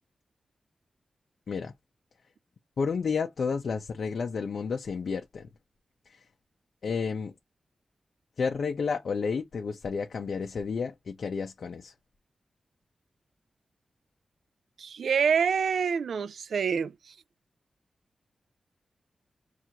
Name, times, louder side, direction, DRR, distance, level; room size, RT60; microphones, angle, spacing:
voice 1, 2.8-5.5 6.1-6.2 6.8-7.3 8.4-11.9, left 5 dB, 70° left, 0.7 m, -31 dB
voice 2, 14.8-17.1, right 6 dB, 85° right, 0.3 m, -27 dB
6.0 x 2.6 x 2.8 m
wide cardioid pair, 120°, 0 cm